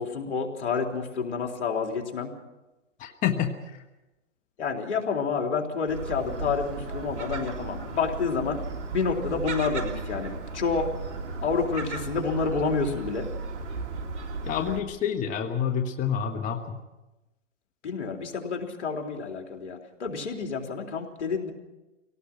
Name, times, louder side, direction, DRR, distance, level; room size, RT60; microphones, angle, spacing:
voice 1, 0.0-2.3 4.6-8.6 8.9-10.9 11.4-13.3 17.8-21.5, left 5 dB, 70° left, 2 dB, 3.8 m, -29 dB
voice 2, 3.0-3.8 14.5-16.8, left 8 dB, 20° left, 6 dB, 1.2 m, -28 dB
Gull seagull, 5.9-14.8, right 3 dB, 70° right, 2.9 m, -35 dB
25.0 x 18.0 x 6.1 m, 1.0 s
hypercardioid pair, 125°, 37 cm